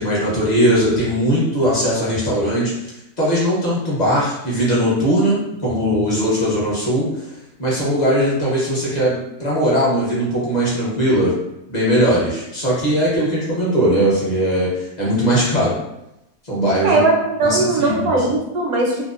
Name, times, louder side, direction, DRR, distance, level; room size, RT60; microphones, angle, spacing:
voice 1, 0.0-2.9 3.2-7.3 7.6-11.3 11.7-15.8 16.4-17.0 17.4-18.2, equal, 40° left, -7 dB, 0.7 m, -19 dB
voice 2, 16.8-19.0, right 2 dB, 80° right, -1 dB, 1.1 m, -19 dB
2.7 x 2.1 x 2.4 m, 0.88 s
omnidirectional pair, 1.6 m